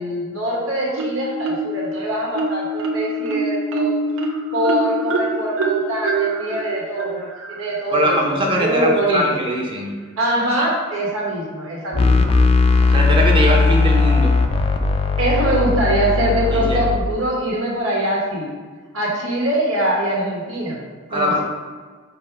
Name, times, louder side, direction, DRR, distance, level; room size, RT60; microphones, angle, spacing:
voice 1, 0.0-3.9 4.5-8.2 8.6-9.2 10.2-12.3 15.2-18.5 18.9-20.8 21.1-21.4, right 1 dB, 85° right, -4 dB, 1.3 m, -23 dB
Marimba xylophone, 1.0-1.9 2.3-7.8, right 2 dB, 70° right, 0.5 m, -24 dB
voice 2, 7.9-10.0 12.8-14.4 16.5-16.8 21.1-21.4, equal, 25° right, -2 dB, 0.8 m, -21 dB
sound 1, 11.9-17.0, left 4 dB, 30° left, 0.3 m, -17 dB
5.2 x 2.2 x 4.5 m, 1.5 s
head